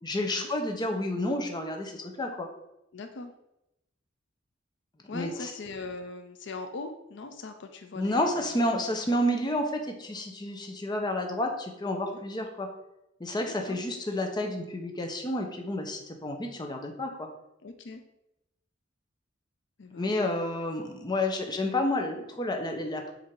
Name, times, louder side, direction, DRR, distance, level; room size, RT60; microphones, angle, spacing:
voice 1, 0.0-2.5 5.1-5.5 8.0-12.7 13.2-17.3 19.9-23.1, left 1 dB, 20° left, 3 dB, 0.7 m, -30 dB
voice 2, 2.9-3.3 5.1-8.7 12.0-12.2 13.4-13.8 17.6-18.0 19.8-20.1, left 3 dB, 65° left, 6 dB, 0.5 m, -41 dB
7.5 x 2.7 x 4.6 m, 0.85 s
head